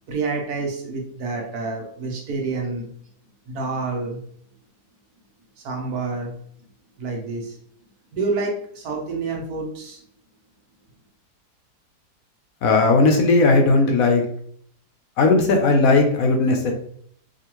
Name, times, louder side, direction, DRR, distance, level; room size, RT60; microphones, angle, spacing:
voice 1, 0.1-2.9 3.5-4.2 5.6-6.3 7.0-7.6 8.1-10.0, right 3 dB, 65° right, 0 dB, 1.4 m, -28 dB
voice 2, 12.6-14.2 15.2-16.7, left 3 dB, 70° left, 3 dB, 0.9 m, -17 dB
5.0 x 2.4 x 3.0 m, 0.63 s
omnidirectional pair, 1.8 m